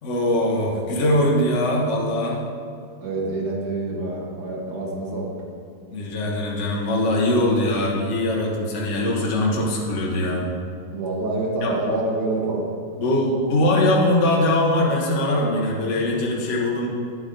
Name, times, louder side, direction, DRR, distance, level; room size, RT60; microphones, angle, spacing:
voice 1, 0.0-2.4 5.9-10.5 11.6-11.8 13.0-16.9, left 1 dB, 45° left, -3 dB, 1.3 m, -21 dB
voice 2, 3.0-5.3 10.9-12.6, right 2 dB, 60° right, -2 dB, 1.9 m, -26 dB
9.1 x 8.0 x 3.8 m, 2.5 s
omnidirectional pair, 2.1 m